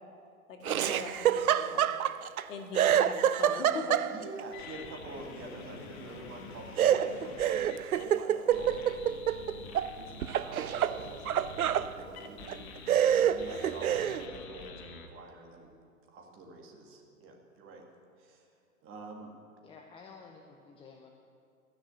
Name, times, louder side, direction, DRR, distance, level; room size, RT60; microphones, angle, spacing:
voice 1, 0.5-1.9 2.5-4.0, left 5 dB, 65° left, 3 dB, 2.0 m, -41 dB
Laughter, 0.6-2.4 2.7-4.4 6.8-9.9 10.2-11.9 12.5-12.6 12.9-14.2, right 10 dB, 85° right, 0.6 m, -27 dB
voice 2, 4.0-9.0 9.3-12.8 13.1-15.7 16.1-17.9 18.2-18.5 18.8-19.3, right 2 dB, 30° right, 2 dB, 2.0 m, -47 dB
sound 1, 4.5-8.0 8.5-15.1, left 4 dB, 45° left, 1.5 m, -47 dB
voice 3, 19.6-21.1, left 5 dB, 15° left, 2 dB, 0.6 m, -52 dB
13.5 x 6.5 x 8.7 m, 2.4 s
hypercardioid pair, 115°, 42 cm